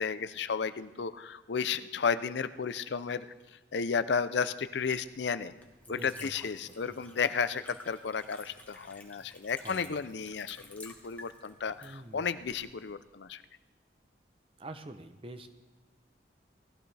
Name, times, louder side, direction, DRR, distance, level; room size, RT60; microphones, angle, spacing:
voice 1, 0.0-3.3 3.7-5.5 5.9-13.4, left 6 dB, 75° left, 13 dB, 0.5 m, -33 dB
Liquid, 4.5-12.9, left 2 dB, 10° left, 1.1 m, -54 dB
voice 2, 5.9-6.3 6.8-6.9 9.6-10.0 11.8-12.4 14.6-15.5, right 1 dB, 30° right, 9 dB, 0.7 m, -46 dB
18.0 x 13.5 x 3.4 m, 1.2 s
head